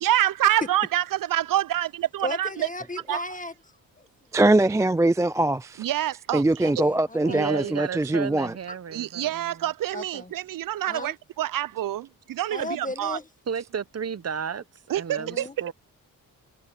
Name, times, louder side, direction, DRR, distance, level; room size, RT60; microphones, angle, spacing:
voice 1, 0.0-2.7 3.1-3.2 5.8-6.4 8.9-13.2 14.9-15.5, right 13 dB, 65° right, 0.5 m, -26 dB
voice 2, 2.2-4.1 6.6-7.8 8.7-8.8 9.9-10.3 10.9-11.1 12.5-13.2 15.2-15.5, left 2 dB, 20° left, 1.7 m, -36 dB
voice 3, 4.3-5.9 6.3-8.5, right 2 dB, 10° right, 0.4 m, -22 dB
voice 4, 7.3-9.6 13.5-14.6 14.9-15.7, right 7 dB, 40° right, 1.0 m, -33 dB
cardioid pair, 70°, 37 cm